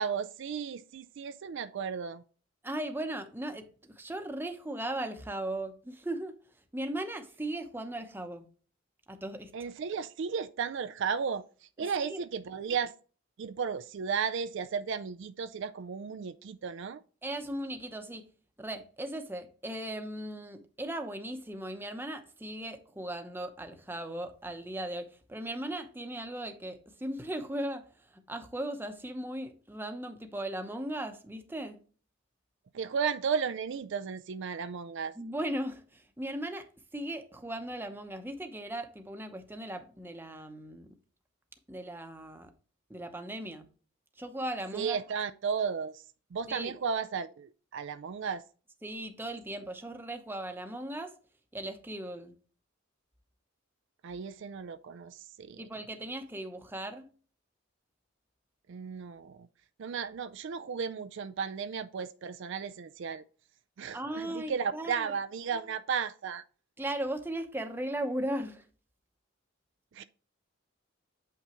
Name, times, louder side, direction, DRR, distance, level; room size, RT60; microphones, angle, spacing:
voice 1, 0.0-2.2 9.5-11.4 11.8-12.9 13.4-17.0 32.7-35.1 44.7-46.0 46.3-48.4 54.0-55.6 58.7-59.5 59.8-63.2 63.8-66.4 69.9-70.0, right 6 dB, 65° right, 0.4 m, -34 dB
voice 2, 2.6-6.4 6.7-8.5 9.1-9.5 11.8-12.2 17.2-18.3 18.6-27.9 28.3-31.8 35.2-36.6 36.9-40.9 41.7-42.5 42.9-43.7 44.2-45.0 46.5-46.7 48.8-51.1 51.5-52.3 55.6-57.1 63.9-65.1 66.8-68.6, right 1 dB, 10° right, 0.8 m, -37 dB
8.1 x 5.7 x 3.0 m
head